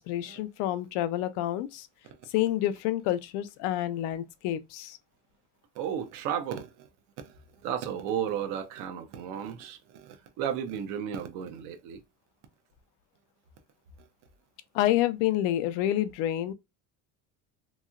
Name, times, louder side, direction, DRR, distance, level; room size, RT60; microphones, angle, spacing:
voice 1, 0.0-1.9 2.3-5.0 14.7-16.5, left 13 dB, 85° left, 0.5 m, -28 dB
voice 2, 5.7-6.9 7.2-12.0 14.0-14.1, right 9 dB, 80° right, 0.7 m, -34 dB
2.9 x 2.8 x 2.4 m
cardioid pair, 145°, 30 cm